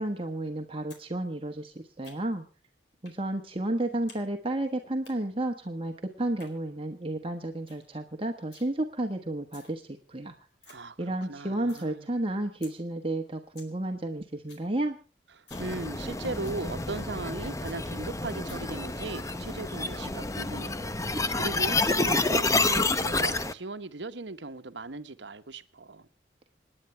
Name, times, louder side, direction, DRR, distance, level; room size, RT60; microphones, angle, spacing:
voice 1, 0.0-2.4 3.0-10.3 11.0-15.0, right 1 dB, 30° right, 1.3 m, -32 dB
sound 1, 0.9-1.1 1.3-2.5 3.0-3.2 3.5-4.2 4.5-5.1 6.2-6.5 7.0-7.1 7.4-7.5 7.7-7.9 8.1-8.7 9.3-9.7 10.1-10.2 10.4-10.7 11.1-11.9 12.2-12.3 12.6-12.7 13.1-13.2 13.4-13.7 14.0-14.1 14.3-14.7 15.0-15.1 15.4-15.7 16.0-16.1 16.4-16.6 17.0-17.1 17.3-17.4 17.6-17.8 18.4-18.6, left 4 dB, 75° left, 4.3 m, -52 dB
voice 2, 10.7-12.1 15.3-26.1, right 3 dB, 80° right, 1.1 m, -38 dB
sound 2, 15.5-23.5, left 3 dB, 15° left, 0.7 m, -29 dB
27.5 x 10.0 x 3.3 m
head